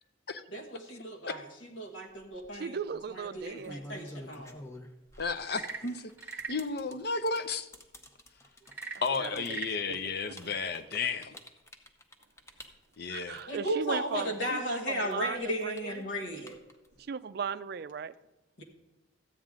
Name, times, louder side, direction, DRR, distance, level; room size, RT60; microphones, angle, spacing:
voice 1, 0.5-2.8 3.1-4.6 13.5-16.6 18.6-18.7, equal, 75° left, 2 dB, 1.6 m, -35 dB
sound 1, 2.1-2.5 3.2-14.6 14.9-17.0, left 1 dB, 15° left, 0.7 m, -49 dB
voice 2, 2.5-3.8 9.2-9.6 9.9-10.0 10.4-10.5 13.1-16.1 17.0-18.1, right 6 dB, 55° right, 15 dB, 0.4 m, -37 dB
voice 3, 5.2-6.1 6.5-7.7 9.0-11.3 13.0-13.4, left 4 dB, 55° left, 10 dB, 0.6 m, -33 dB
Frog / Percussion / Wood, 5.5-6.7 8.6-9.8, right 4 dB, 10° right, 1.1 m, -40 dB
13.5 x 8.9 x 3.7 m, 1.0 s
head